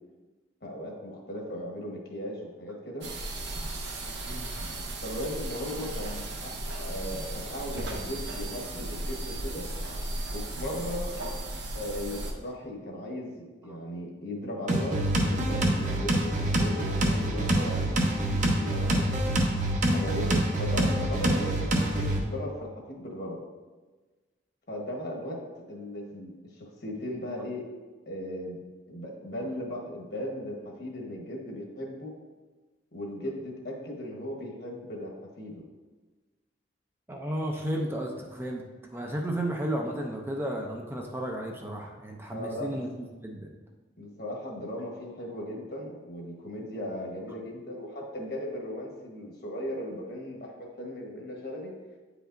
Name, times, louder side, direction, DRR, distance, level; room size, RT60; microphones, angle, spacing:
voice 1, 0.6-3.1 5.0-9.7 10.3-11.2 11.7-19.2 19.9-23.4 24.7-27.7 28.1-28.6 28.9-32.2 32.9-35.6 42.3-42.8 44.0-51.8, left 1 dB, 60° left, -1 dB, 1.3 m, -37 dB
sound 1, 3.0-12.3, right 1 dB, 75° right, 0.9 m, -36 dB
sound 2, 14.7-22.2, right 1 dB, 45° right, 0.9 m, -26 dB
voice 2, 37.1-38.6 38.9-43.5, right 1 dB, 15° right, 1 dB, 0.5 m, -33 dB
8.8 x 5.0 x 2.6 m, 1.3 s
head